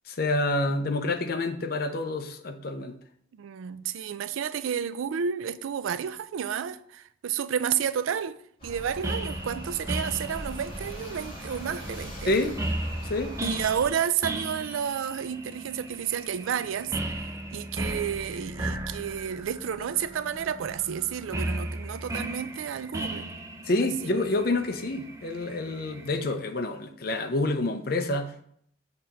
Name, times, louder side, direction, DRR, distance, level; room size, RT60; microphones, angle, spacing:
voice 1, 0.1-3.0 12.3-12.6 13.0-13.3 23.7-28.4, left 2 dB, 50° left, 0.6 m, -28 dB
voice 2, 3.3-8.4 8.6-12.5 13.4-23.3 23.8-24.1, right 8 dB, 85° right, 0.3 m, -31 dB
sound 1, 8.6-13.9, equal, 25° left, 2.1 m, -40 dB
sound 2, 9.0-26.3, right 1 dB, 15° right, 0.4 m, -36 dB
6.7 x 2.9 x 5.1 m
head